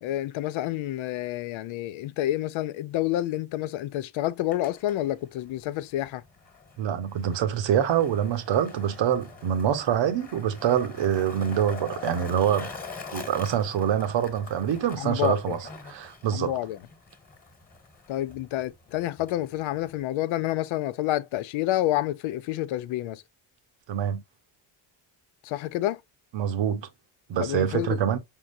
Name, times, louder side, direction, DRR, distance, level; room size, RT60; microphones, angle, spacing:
voice 1, 0.0-6.2 15.0-15.6 16.3-16.8 18.1-23.2 25.4-26.0 27.4-28.0, left 14 dB, 75° left, 0.6 m, -29 dB
Skateboard, 4.4-20.0, left 4 dB, 20° left, 1.3 m, -44 dB
voice 2, 6.8-12.7 13.1-16.5 23.9-24.2 26.3-26.9 27.3-28.2, right 9 dB, 65° right, 0.9 m, -25 dB
4.6 x 3.7 x 2.5 m
cardioid pair, 75°, 48 cm